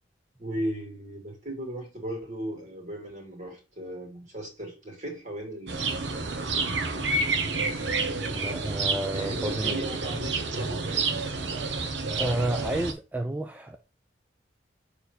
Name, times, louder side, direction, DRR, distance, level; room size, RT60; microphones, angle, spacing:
voice 1, 0.4-7.3 9.1-10.8, right 1 dB, 40° right, 2.6 m, -37 dB
sound 1, 5.7-12.9, right 3 dB, 75° right, 0.9 m, -29 dB
voice 2, 8.3-10.0 11.6-11.8 12.2-13.8, right 1 dB, 10° right, 0.3 m, -31 dB
7.0 x 3.3 x 4.2 m
head